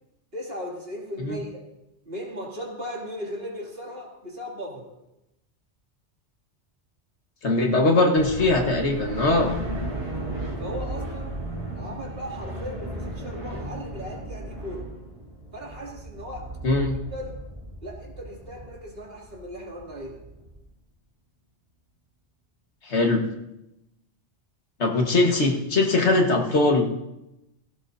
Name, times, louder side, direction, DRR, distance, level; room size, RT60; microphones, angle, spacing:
voice 1, 0.3-1.6 2.0-4.9 10.6-11.4 11.7-14.9 15.5-16.5 17.1-17.4 17.8-20.2, equal, 55° right, -3 dB, 3.0 m, -37 dB
voice 2, 7.4-9.5 16.6-17.0 22.9-23.2 24.8-26.9, left 2 dB, 75° left, 2 dB, 1.9 m, -21 dB
sound 1, 8.2-20.6, right 1 dB, 40° right, 4.4 m, -35 dB
17.0 x 16.0 x 2.7 m, 0.90 s
omnidirectional pair, 1.2 m